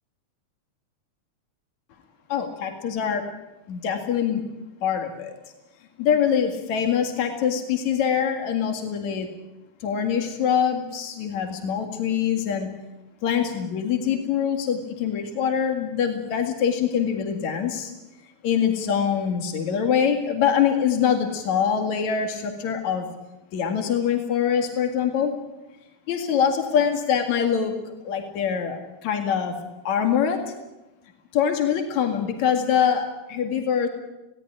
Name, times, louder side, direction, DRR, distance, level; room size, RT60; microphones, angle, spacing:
voice 1, 2.3-3.2 3.7-4.4 4.8-5.3 6.0-9.3 9.8-12.7 13.2-17.9 18.4-23.1 23.5-25.3 26.1-27.7 28.0-29.5 29.8-30.4 31.3-33.9, left 8 dB, 75° left, 4 dB, 3.4 m, -24 dB
20.0 x 17.0 x 10.0 m, 0.99 s
omnidirectional pair, 3.3 m